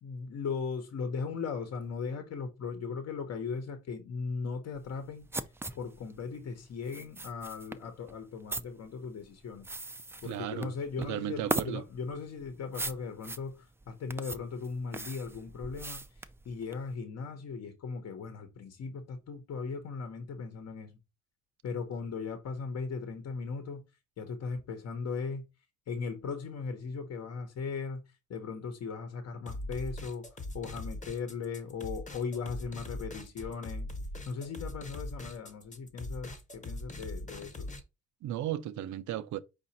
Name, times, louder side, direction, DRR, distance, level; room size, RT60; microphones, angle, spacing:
voice 1, 0.0-5.3 5.7-9.7 10.2-21.0 21.6-23.8 24.2-25.4 25.9-33.9 34.3-37.7, left 5 dB, 55° left, 1.0 m, -38 dB
sound 1, 4.7-16.9, right 2 dB, 10° right, 0.3 m, -40 dB
voice 2, 10.2-10.7 11.0-11.8 38.2-39.4, right 12 dB, 70° right, 0.6 m, -35 dB
sound 2, 29.5-37.8, left 1 dB, 25° left, 1.0 m, -41 dB
4.9 x 2.5 x 4.1 m
cardioid pair, 90°, 30 cm